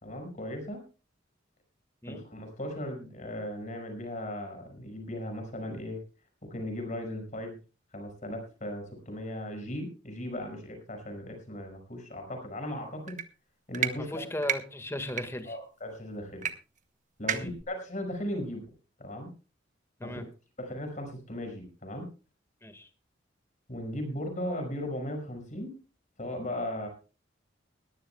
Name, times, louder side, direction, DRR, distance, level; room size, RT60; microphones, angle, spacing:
voice 1, 0.0-0.8 2.1-6.0 6.5-7.6 7.9-13.2 13.7-14.2 15.5-16.5 17.2-18.7 19.0-19.3 20.0-20.2 20.6-22.1 23.7-25.7 26.2-26.9, left 1 dB, 40° left, 4 dB, 5.5 m, -37 dB
sound 1, 13.1-13.3 13.7-13.9 14.4-14.6 15.1-15.2 16.4-16.5 16.8-16.9 17.3-17.6, right 9 dB, 40° right, 1.1 m, -30 dB
voice 2, 14.1-15.6 17.3-17.5 20.0-20.2 22.6-22.9, left 1 dB, 15° left, 8 dB, 1.7 m, -36 dB
20.5 x 14.5 x 2.3 m, 0.34 s
head